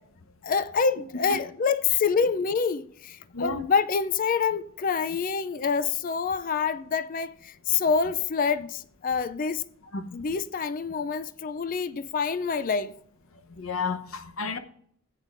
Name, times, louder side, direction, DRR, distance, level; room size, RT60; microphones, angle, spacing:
voice 1, 0.4-9.6 10.1-12.9, left 5 dB, 40° left, 0.4 m, -26 dB
voice 2, 3.3-3.6 9.9-10.1 13.6-14.6, left 3 dB, 65° left, 0.9 m, -31 dB
14.0 x 8.9 x 2.5 m
head